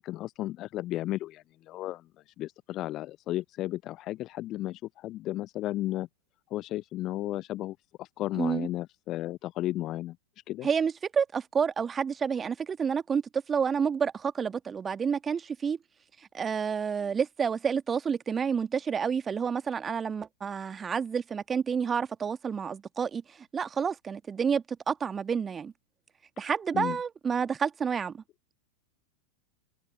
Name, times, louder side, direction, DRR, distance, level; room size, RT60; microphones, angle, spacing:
voice 1, 0.0-2.1 2.4-6.1 6.5-10.2 10.5-10.7 26.7-27.0, left 15 dB, 35° left, 1.0 m, -34 dB
voice 2, 8.3-8.7 10.6-15.8 16.3-25.7 26.4-28.2, right 6 dB, 20° right, 1.7 m, -29 dB
figure-of-eight pair, 90°, 0 cm